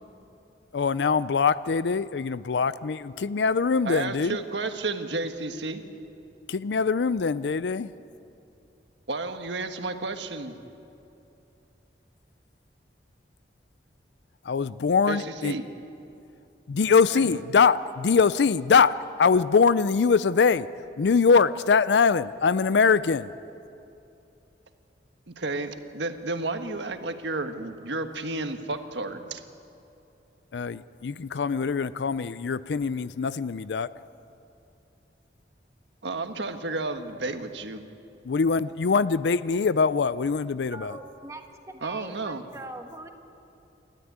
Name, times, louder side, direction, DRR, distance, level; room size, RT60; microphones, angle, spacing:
voice 1, 0.7-4.4 6.5-7.9 14.4-15.5 16.7-20.7 21.0-23.3 30.5-33.9 38.2-41.0, left 5 dB, 75° left, 16 dB, 0.5 m, -23 dB
voice 2, 3.8-5.8 9.1-10.6 15.1-15.6 17.1-17.3 25.3-29.4 36.0-37.8 41.8-42.4, right 3 dB, 80° right, 7 dB, 1.4 m, -32 dB
voice 3, 40.7-43.1, right 2 dB, 15° right, 4 dB, 1.5 m, -42 dB
28.5 x 13.0 x 9.5 m, 2.7 s
head